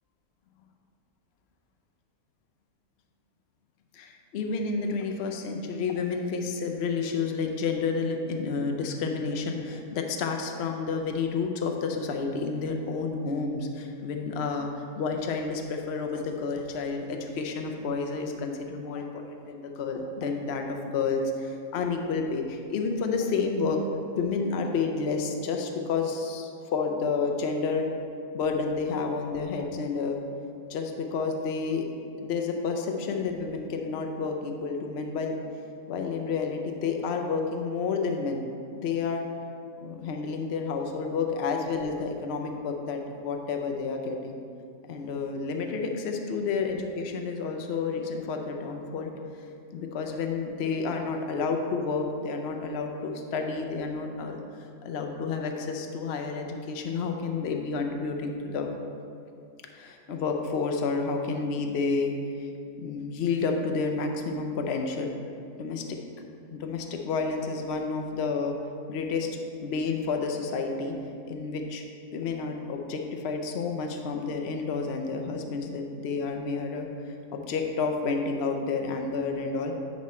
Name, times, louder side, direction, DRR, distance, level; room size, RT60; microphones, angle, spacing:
voice 1, 3.9-14.7 14.9-23.8 24.1-27.9 28.3-30.2 30.7-31.9 32.2-35.4 35.9-38.4 38.8-39.2 39.8-44.4 44.9-49.1 49.7-54.4 54.8-58.7 59.7-62.5 62.8-65.1 65.6-66.0 66.5-68.6 68.9-69.3 69.6-71.0 71.3-71.8 72.1-79.7, left 4 dB, 55° left, 3 dB, 0.8 m, -30 dB
9.9 x 4.3 x 4.2 m, 2.4 s
omnidirectional pair, 1.6 m